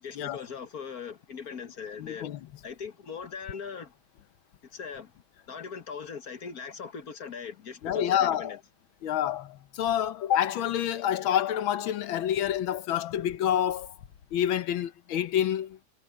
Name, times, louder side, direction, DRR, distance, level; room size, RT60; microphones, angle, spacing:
voice 1, 0.0-2.3 2.6-3.9 4.7-5.1 5.5-8.6, left 6 dB, 50° left, 1.7 m, -40 dB
voice 2, 2.0-2.5 7.8-8.6 9.0-13.9 14.3-15.8, left 10 dB, 85° left, 1.8 m, -28 dB
omnidirectional pair, 2.1 m